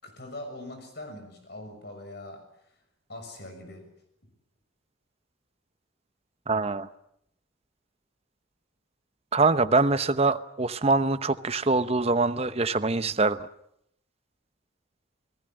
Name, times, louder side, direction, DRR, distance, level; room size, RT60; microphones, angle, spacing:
voice 1, 0.0-2.5 3.1-3.9 4.2-4.3 12.9-13.2, left 1 dB, 55° left, 6 dB, 6.6 m, -42 dB
voice 2, 6.5-6.9 9.3-13.4, right 3 dB, 30° right, 12 dB, 0.9 m, -24 dB
29.5 x 19.0 x 7.7 m, 0.75 s
head